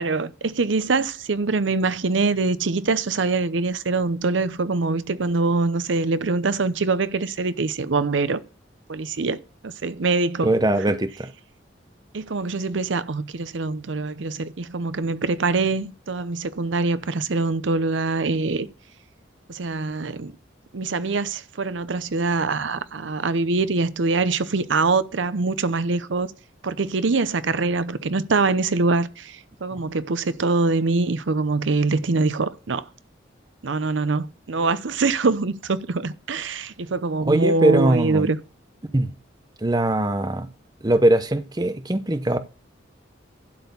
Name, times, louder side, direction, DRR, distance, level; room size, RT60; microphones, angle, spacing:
voice 1, 0.0-8.4 8.9-10.5 10.8-10.9 12.1-18.7 19.5-20.3 20.7-26.3 26.6-32.9 33.6-38.4, right 3 dB, 75° right, 0.7 m, -24 dB
voice 2, 10.4-11.3 29.7-29.8 37.3-38.3 38.9-39.1 39.6-40.5 40.8-42.4, right 1 dB, 20° right, 0.7 m, -21 dB
12.0 x 4.3 x 7.0 m
head